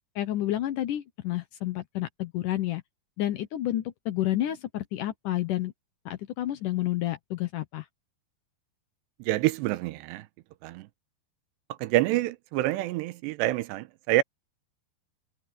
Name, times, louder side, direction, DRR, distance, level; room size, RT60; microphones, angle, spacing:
voice 1, 0.2-2.8 3.2-5.7 6.1-7.8, left 14 dB, 75° left, 2.0 m, -30 dB
voice 2, 9.2-10.3 10.6-10.9 11.7-14.2, right 16 dB, 90° right, 2.9 m, -27 dB
omnidirectional pair, 4.9 m